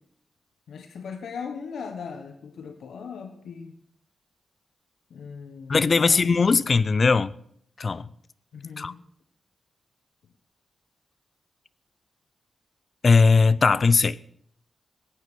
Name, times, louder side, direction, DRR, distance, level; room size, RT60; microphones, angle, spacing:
voice 1, 0.7-3.7 5.1-6.3 8.5-9.0, left 6 dB, 90° left, 1.2 m, -38 dB
voice 2, 5.7-7.3 7.8-8.1 8.8-8.9 13.0-14.2, left 4 dB, 50° left, 0.6 m, -19 dB
17.5 x 9.5 x 6.3 m
cardioid pair, 85°, 0 cm